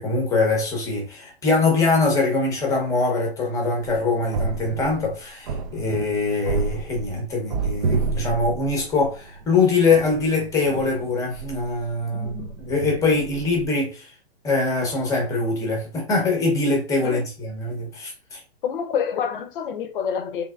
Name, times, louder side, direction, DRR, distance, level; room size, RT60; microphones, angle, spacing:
voice 1, 0.0-14.1 14.4-18.4, left 3 dB, 10° left, 0.8 m, -23 dB
sound 1, 3.8-5.1 5.5-9.4 9.8-12.0 12.2-13.6, right 4 dB, 40° right, 0.5 m, -30 dB
voice 2, 12.1-12.5 17.0-17.2 18.6-20.5, left 7 dB, 50° left, 0.7 m, -28 dB
3.3 x 3.2 x 2.3 m
hypercardioid pair, 145°, 33 cm